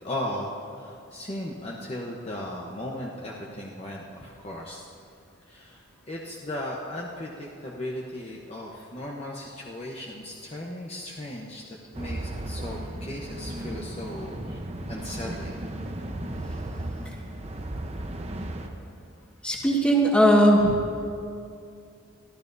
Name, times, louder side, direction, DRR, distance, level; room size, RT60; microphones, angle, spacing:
voice 1, 0.0-4.8 5.5-11.6 12.0-14.6 14.9-15.5, left 1 dB, 30° left, -2 dB, 0.9 m, -36 dB
sound 1, 11.9-18.7, right 1 dB, 30° right, 0.8 m, -35 dB
voice 2, 19.4-20.8, equal, 5° left, -2 dB, 1.5 m, -19 dB
23.0 x 14.0 x 2.7 m, 2.4 s
head